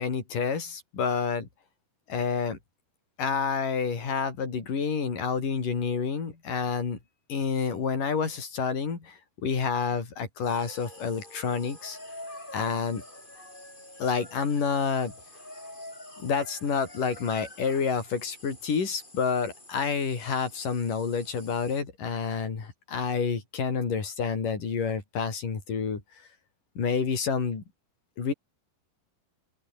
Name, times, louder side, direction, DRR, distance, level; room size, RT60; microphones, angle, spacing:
voice 1, 0.0-1.5 2.1-2.6 3.2-7.0 7.3-12.0 12.5-13.0 14.0-15.1 16.2-26.0 26.8-27.6 28.2-28.3, left 5 dB, 50° left, 6.1 m, -29 dB
sound 1, 10.4-21.8, left 1 dB, 10° left, 6.5 m, -47 dB
open air
omnidirectional pair, 4.9 m